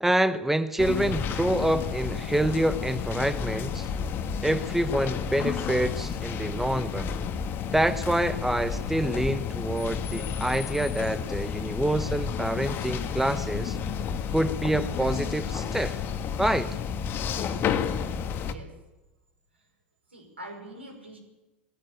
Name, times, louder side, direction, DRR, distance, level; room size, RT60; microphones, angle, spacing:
voice 1, 0.0-3.9 4.4-7.1 7.7-13.8 14.3-16.0 16.4-16.8, right 1 dB, 5° right, 13 dB, 1.0 m, -27 dB
sound 1, 0.8-18.5, left 7 dB, 40° left, 1.7 m, -31 dB
voice 2, 18.5-18.8 19.5-19.7 20.1-21.2, right 1 dB, 85° right, 1 dB, 5.7 m, -44 dB
19.5 x 16.0 x 8.6 m, 1.0 s
figure-of-eight pair, 80°, 6 cm